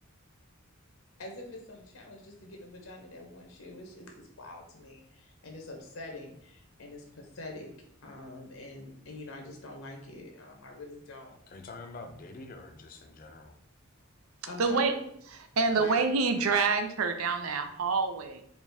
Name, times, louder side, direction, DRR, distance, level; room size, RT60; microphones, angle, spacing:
voice 1, 1.2-7.7 8.0-11.4 14.5-15.0 15.8-16.0, left 2 dB, 75° left, 0.7 m, -45 dB
voice 2, 11.5-13.6, left 3 dB, 40° left, 0.4 m, -46 dB
voice 3, 14.6-14.9 15.6-18.4, right 4 dB, 85° right, 0.5 m, -27 dB
4.3 x 2.4 x 3.3 m
head